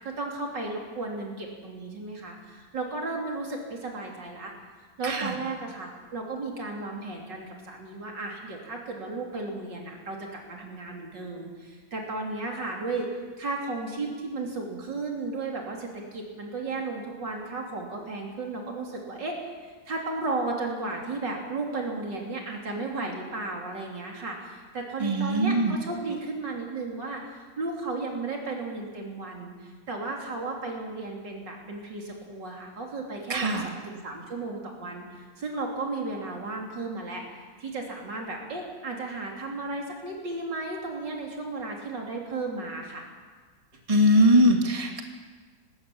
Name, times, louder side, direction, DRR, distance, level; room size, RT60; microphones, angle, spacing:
voice 1, 0.0-4.5 5.0-13.1 13.4-19.4 19.9-37.2 37.6-43.1, right 3 dB, 85° right, 0 dB, 3.9 m, -34 dB
voice 2, 5.0-5.3 25.0-25.8 33.3-33.7 43.9-45.0, equal, 20° right, 3 dB, 2.0 m, -21 dB
19.5 x 15.5 x 8.7 m, 1.5 s
omnidirectional pair, 1.9 m